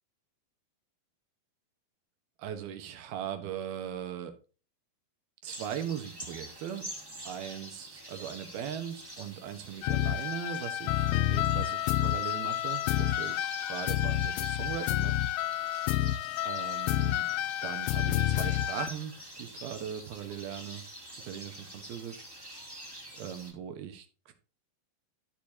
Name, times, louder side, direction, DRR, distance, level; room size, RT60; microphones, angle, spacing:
voice 1, 2.4-4.3 5.4-6.8 7.2-15.2 15.4-15.7 16.4-17.3 17.6-20.8 21.2-22.2 23.2-24.3, right 9 dB, 80° right, 7 dB, 3.3 m, -39 dB
sound 1, 5.5-23.5, right 1 dB, 5° right, 2.4 m, -46 dB
sound 2, 9.8-18.9, left 13 dB, 80° left, 2.2 m, -29 dB
12.5 x 6.8 x 2.9 m, 0.35 s
omnidirectional pair, 4.3 m